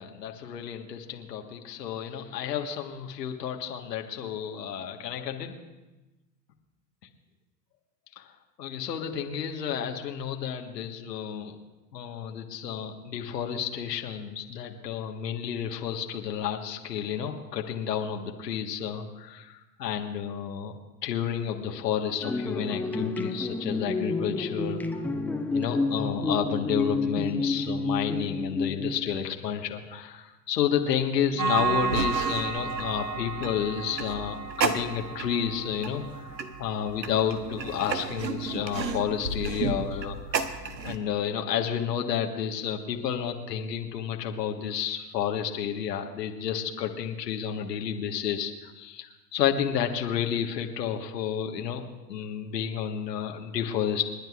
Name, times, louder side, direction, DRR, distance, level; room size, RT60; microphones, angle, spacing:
voice 1, 0.0-5.5 8.2-8.3 8.6-11.5 11.9-20.7 21.0-25.0 25.5-40.4 40.8-51.8 52.1-54.0, left 8 dB, 75° left, 3 dB, 1.5 m, -31 dB
sound 1, 22.2-29.3, left 3 dB, 5° left, 0.5 m, -29 dB
sound 2, 31.4-41.0, right 5 dB, 90° right, 1.0 m, -31 dB
29.0 x 10.5 x 2.4 m, 1.1 s
hypercardioid pair, 90°, 50 cm